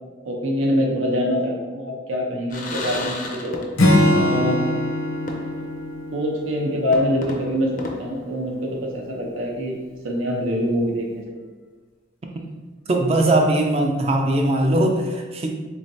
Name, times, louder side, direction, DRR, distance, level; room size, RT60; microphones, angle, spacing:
voice 1, 0.2-3.6 4.1-4.6 6.1-9.8 10.0-11.2, equal, 90° right, 0 dB, 0.7 m, -24 dB
sound 1, 2.5-4.1 4.4-4.5 5.3-5.8 6.2-6.3 6.9-8.9, left 2 dB, 40° left, 0.4 m, -34 dB
Acoustic guitar / Strum, 3.8-7.3, left 1 dB, 80° left, 0.7 m, -22 dB
voice 2, 12.9-15.5, right 1 dB, 30° right, 2 dB, 0.3 m, -20 dB
3.7 x 3.1 x 2.7 m, 1.3 s
head